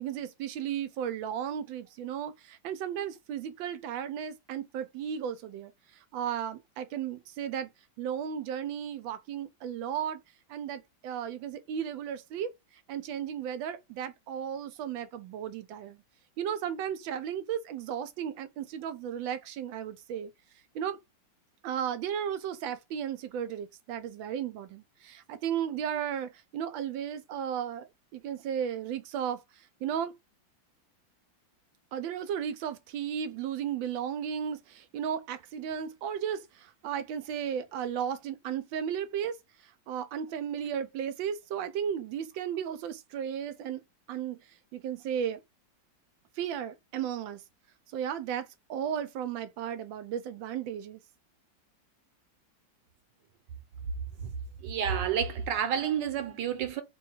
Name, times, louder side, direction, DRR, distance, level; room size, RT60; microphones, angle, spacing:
voice 1, 0.0-5.7 6.1-7.7 8.0-10.2 10.5-12.5 12.9-16.0 16.4-20.3 20.7-21.0 21.6-29.4 29.8-30.1 31.9-36.4 36.8-39.4 39.9-43.8 44.1-44.4 44.7-45.4 46.4-47.4 47.9-51.0, right 9 dB, 90° right, 1.4 m, -34 dB
voice 2, 54.6-56.8, right 8 dB, 70° right, 1.4 m, -29 dB
3.7 x 2.3 x 4.4 m
omnidirectional pair, 2.1 m